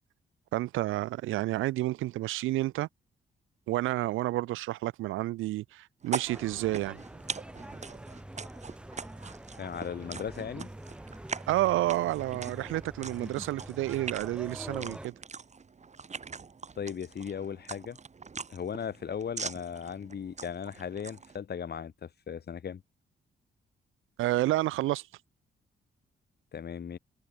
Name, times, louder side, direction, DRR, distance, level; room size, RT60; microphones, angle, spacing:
voice 1, 0.5-2.9 3.7-7.0 11.5-15.1 24.2-25.1, right 16 dB, 80° right, 0.4 m, -30 dB
sound 1, 6.0-21.4, right 5 dB, 35° right, 1.0 m, -42 dB
sound 2, 6.3-15.1, right 1 dB, 5° right, 0.5 m, -45 dB
voice 2, 9.6-10.7 16.8-18.0 18.5-22.8 26.5-27.0, left 7 dB, 55° left, 1.2 m, -37 dB
supercardioid pair, 55°, 20 cm